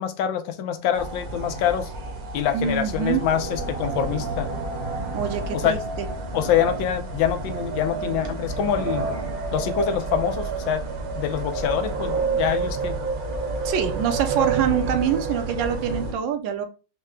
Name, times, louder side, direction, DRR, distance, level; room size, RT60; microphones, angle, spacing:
voice 1, 0.0-1.9 2.3-4.5 5.5-5.8 6.3-9.1 9.5-10.8 11.1-13.0, left 9 dB, 85° left, 8 dB, 1.4 m, -25 dB
sound 1, 0.9-16.1, right 4 dB, 60° right, 1.2 m, -29 dB
voice 2, 2.5-3.2 5.1-6.1 13.6-16.7, right 8 dB, 75° right, 8 dB, 1.3 m, -25 dB
4.5 x 2.1 x 3.5 m, 0.33 s
omnidirectional pair, 2.1 m